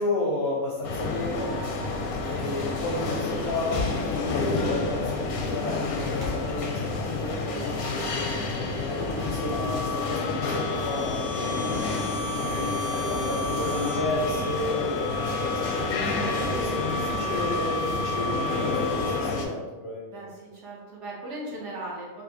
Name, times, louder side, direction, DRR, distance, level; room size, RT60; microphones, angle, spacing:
voice 1, 0.0-1.6 2.3-7.4 8.1-12.3 12.9-16.0 16.6-20.2, left 2 dB, 60° left, -4 dB, 0.7 m, -32 dB
sound 1, 0.8-19.5, left 3 dB, 85° left, 1.1 m, -29 dB
sound 2, 3.7-4.4 6.1-7.5 9.0-10.3 10.8-11.0 12.4-13.9 16.4-18.0, left 2 dB, 30° right, 1.2 m, -37 dB
sound 3, 9.1-19.5, left 2 dB, 25° left, 0.3 m, -34 dB
voice 2, 20.1-22.2, right 1 dB, 60° right, -3 dB, 0.9 m, -38 dB
3.3 x 2.6 x 2.8 m, 1.1 s
omnidirectional pair, 1.5 m